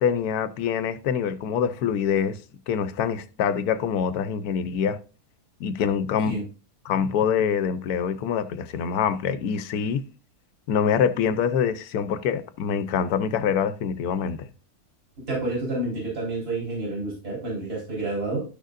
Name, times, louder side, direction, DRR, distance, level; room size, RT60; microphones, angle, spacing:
voice 1, 0.0-2.4 2.7-5.0 5.6-6.4 6.8-10.0 10.7-14.5, left 7 dB, 75° left, 1.2 m, -25 dB
voice 2, 15.3-18.4, right 2 dB, 75° right, 4.4 m, -29 dB
12.0 x 6.4 x 2.5 m
omnidirectional pair, 1.6 m